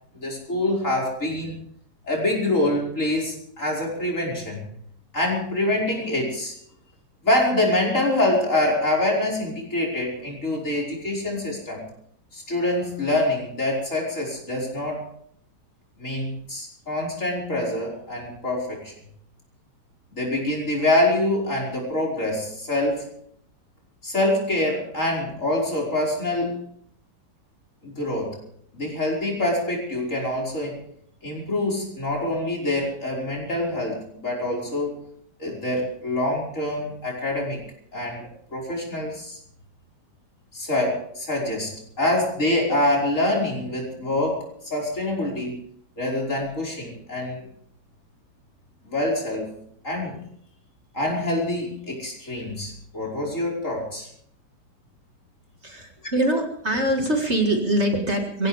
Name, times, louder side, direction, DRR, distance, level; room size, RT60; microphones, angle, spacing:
voice 1, 0.1-1.6 2.0-4.7 5.1-6.5 7.2-11.8 12.3-15.1 16.0-18.9 20.1-23.1 24.0-26.6 27.8-28.4 28.7-30.8 31.2-35.0 35.4-37.6 37.9-38.2 38.5-39.4 40.5-45.6 46.0-47.5 48.8-49.5 49.8-50.2 50.9-54.1, left 1 dB, 50° left, 0 dB, 5.7 m, -25 dB
voice 2, 55.6-58.5, right 1 dB, 40° right, 2 dB, 2.3 m, -23 dB
23.5 x 16.5 x 3.5 m, 0.65 s
omnidirectional pair, 1.8 m